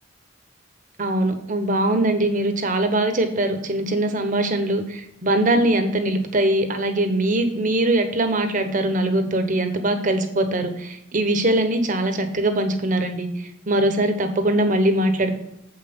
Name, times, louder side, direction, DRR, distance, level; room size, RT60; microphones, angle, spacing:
voice 1, 1.0-15.3, right 1 dB, 45° right, 7 dB, 1.1 m, -22 dB
7.6 x 5.8 x 5.4 m, 0.82 s
head